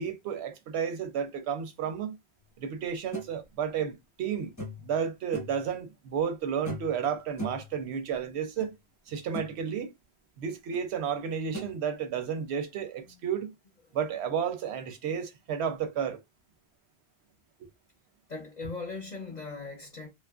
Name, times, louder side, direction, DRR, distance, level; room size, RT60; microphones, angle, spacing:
voice 1, 0.0-2.2 2.6-4.5 4.8-8.7 9.1-9.9 10.4-13.5 13.9-16.2, right 7 dB, 85° right, 0.9 m, -32 dB
sound 1, 3.1-3.3 4.6-4.9 5.3-5.6 6.6-7.0 7.4-7.7 8.6-8.7 9.1-9.5 10.7-10.8 11.5-11.7, right 1 dB, 20° left, 0.8 m, -38 dB
voice 2, 18.3-20.1, left 3 dB, 50° left, 0.7 m, -39 dB
2.8 x 2.4 x 2.3 m
omnidirectional pair, 1.1 m